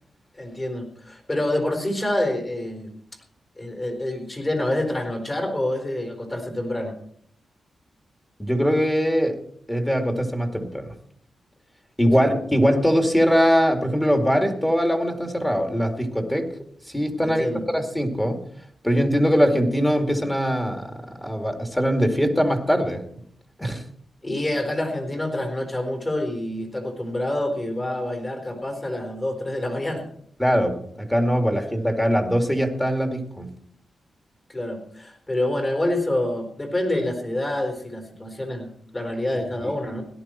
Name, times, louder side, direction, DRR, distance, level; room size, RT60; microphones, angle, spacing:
voice 1, 0.4-2.9 3.6-6.9 12.2-12.3 17.2-17.6 24.2-30.0 34.5-40.0, left 1 dB, 25° left, 4 dB, 4.1 m, -27 dB
voice 2, 8.4-9.4 9.7-10.9 12.0-16.5 16.9-18.5 18.8-23.0 23.6-23.8 30.4-33.5 39.6-39.7, equal, 10° left, 4 dB, 2.4 m, -22 dB
17.5 x 11.5 x 4.5 m, 0.62 s
cardioid pair, 100°, 0 cm